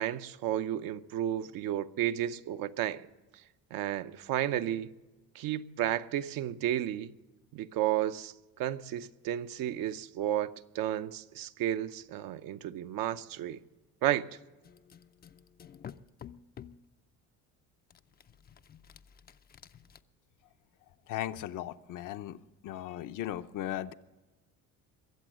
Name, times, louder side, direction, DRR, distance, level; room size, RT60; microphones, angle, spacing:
voice 1, 0.0-3.1 3.7-4.9 5.3-7.1 7.5-13.6 14.0-14.3, right 12 dB, 70° right, 0.8 m, -32 dB
sound 1, 14.6-16.9 17.9-20.0, left 9 dB, 30° left, 0.4 m, -51 dB
voice 2, 21.1-22.4 22.6-23.9, left 12 dB, 60° left, 0.7 m, -37 dB
22.5 x 7.8 x 6.2 m
cardioid pair, 110°, 35 cm